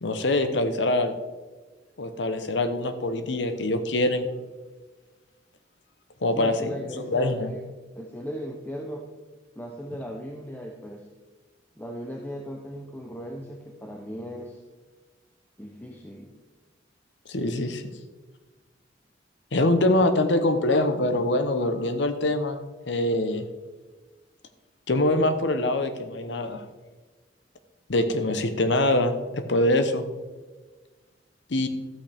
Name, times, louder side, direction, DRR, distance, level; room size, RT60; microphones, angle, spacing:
voice 1, 0.0-1.1 2.0-4.3 6.2-6.7 7.0-7.5 17.3-17.8 19.5-23.5 24.9-26.6 27.9-30.0 31.5-31.7, left 1 dB, 75° left, 9 dB, 0.8 m, -24 dB
voice 2, 6.3-7.6 8.0-9.1 9.6-11.1 11.8-14.6 15.6-16.3, equal, 10° left, 1 dB, 0.7 m, -37 dB
12.5 x 8.4 x 3.5 m, 1.3 s
head